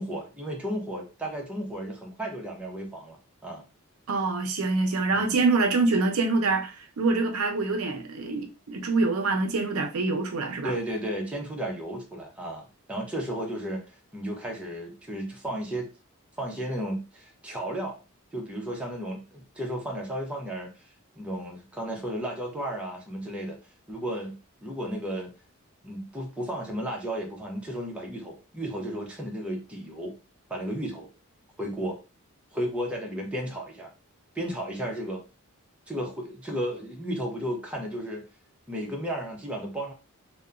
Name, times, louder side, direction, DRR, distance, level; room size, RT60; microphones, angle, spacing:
voice 1, 0.0-3.6 5.1-5.3 10.6-15.9 16.4-18.0 18.3-20.7 21.2-23.6 23.9-24.4 24.6-25.3 25.8-30.1 30.5-31.1 31.6-32.0 32.5-33.9 34.3-35.2 35.9-38.2 38.7-39.9, right 1 dB, 5° right, 0.6 m, -33 dB
voice 2, 4.1-10.7, right 3 dB, 70° right, 0.5 m, -25 dB
2.8 x 2.1 x 2.4 m
head